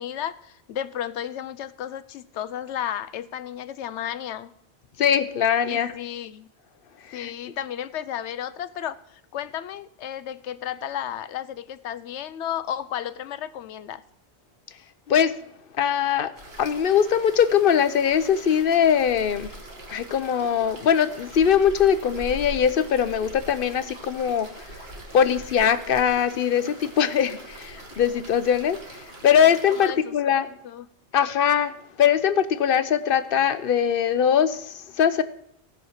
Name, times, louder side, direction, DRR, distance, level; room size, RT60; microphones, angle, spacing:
voice 1, 0.0-4.5 5.6-6.5 7.1-14.0 29.3-30.1 30.4-30.9, left 10 dB, 80° left, 0.9 m, -33 dB
voice 2, 5.0-5.9 7.1-7.3 15.1-15.3 15.8-16.3 16.6-19.5 19.9-24.5 25.1-30.5 31.1-31.7 32.0-35.2, left 8 dB, 60° left, 0.8 m, -21 dB
sound 1, 16.4-29.9, right 1 dB, 60° right, 2.0 m, -42 dB
16.0 x 5.7 x 6.5 m
omnidirectional pair, 1.2 m